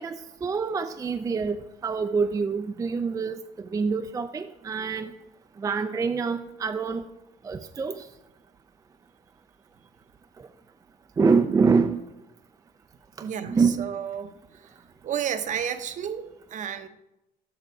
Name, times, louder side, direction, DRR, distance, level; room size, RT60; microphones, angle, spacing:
voice 1, 0.0-5.1 5.6-7.0 7.4-8.0 11.2-12.0 13.2-13.8, right 5 dB, 20° right, 0.3 m, -26 dB
voice 2, 13.2-14.3 15.0-16.9, right 8 dB, 50° right, 0.7 m, -31 dB
6.7 x 5.8 x 4.6 m
cardioid pair, 110°, 17 cm